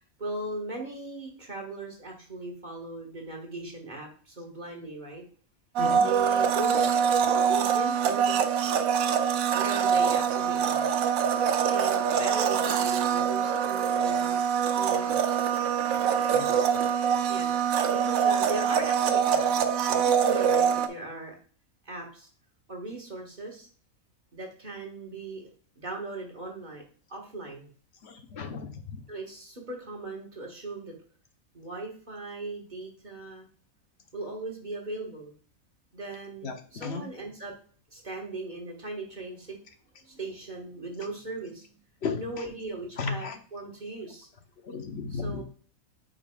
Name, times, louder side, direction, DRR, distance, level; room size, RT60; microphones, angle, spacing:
voice 1, 0.2-5.2 6.0-6.9 7.5-8.7 9.5-10.9 11.6-14.4 14.7-15.2 17.3-21.4 21.8-22.3 22.7-23.7 24.3-25.5 25.8-26.8 27.1-27.7 29.1-30.9 31.5-33.5 34.1-35.3 35.9-37.5 37.9-39.6 40.0-41.7 42.1-44.3 45.1-45.4, right 2 dB, 35° right, 0 dB, 1.6 m, -38 dB
Domestic sounds home sounds, 5.8-20.9, right 7 dB, 75° right, 1.1 m, -24 dB
voice 2, 28.0-28.8 36.4-37.1 42.0-42.2 43.0-43.4 44.7-45.4, left 5 dB, 50° left, 6 dB, 1.0 m, -34 dB
8.3 x 5.2 x 2.3 m, 0.44 s
omnidirectional pair, 1.5 m